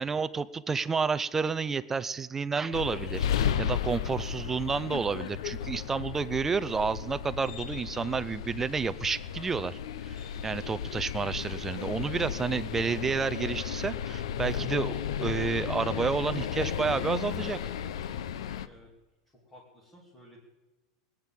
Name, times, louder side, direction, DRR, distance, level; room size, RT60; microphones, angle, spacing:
voice 1, 0.0-17.6, right 5 dB, 10° right, 14 dB, 0.5 m, -30 dB
sound 1, 2.7-18.7, left 9 dB, 90° left, 0.9 m, -34 dB
voice 2, 19.4-20.4, equal, 10° left, -5 dB, 2.7 m, -54 dB
21.0 x 9.0 x 7.6 m, 1.2 s
supercardioid pair, 170°, 3 cm